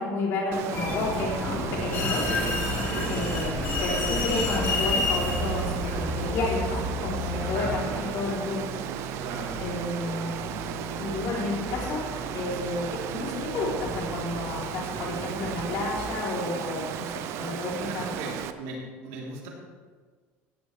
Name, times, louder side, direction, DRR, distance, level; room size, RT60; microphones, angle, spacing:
voice 1, 0.0-2.3 3.1-8.8 9.6-10.3 11.0-12.1 12.3-18.1, left 2 dB, 55° left, -4 dB, 3.6 m, -31 dB
Water, 0.5-18.5, right 9 dB, 55° right, 0.7 m, -35 dB
sound 1, 0.7-7.8, left 2 dB, 40° left, 3.0 m, -29 dB
voice 2, 2.0-3.4 7.2-8.3 9.2-9.6 12.5-12.6 17.4-17.5 17.7-19.5, right 3 dB, 85° right, -3 dB, 3.6 m, -38 dB
Piano, 7.3-16.0, right 1 dB, 20° left, 3.5 m, -40 dB
15.5 x 12.0 x 3.4 m, 1.5 s
cardioid pair, 150°, 5 cm